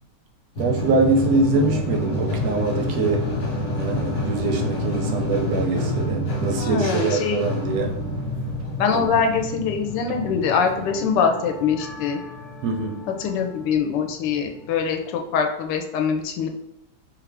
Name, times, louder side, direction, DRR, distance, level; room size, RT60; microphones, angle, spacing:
sound 1, 0.6-14.7, left 1 dB, 55° left, 1.2 m, -29 dB
voice 1, 0.6-3.3 3.8-7.9 8.9-9.1 12.6-13.0, right 3 dB, 70° right, 0.8 m, -23 dB
voice 2, 6.5-7.4 8.8-12.2 13.2-16.5, left 6 dB, 85° left, 1.2 m, -23 dB
3.1 x 2.5 x 3.2 m
omnidirectional pair, 1.9 m